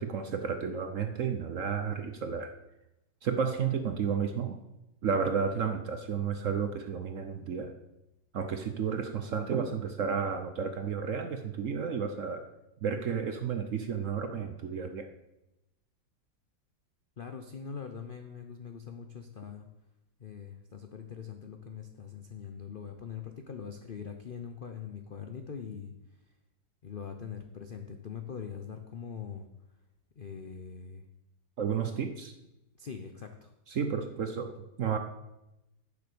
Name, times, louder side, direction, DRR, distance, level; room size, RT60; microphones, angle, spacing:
voice 1, 0.0-2.5 3.2-4.6 5.0-7.7 8.3-12.4 12.8-15.1 31.6-32.3 33.7-35.0, right 6 dB, 60° right, 7 dB, 0.9 m, -32 dB
voice 2, 17.2-19.7 20.2-25.9 26.8-29.5 30.2-31.0 32.8-33.5, left 7 dB, 85° left, 6 dB, 0.4 m, -42 dB
10.5 x 7.0 x 6.8 m, 0.93 s
omnidirectional pair, 2.1 m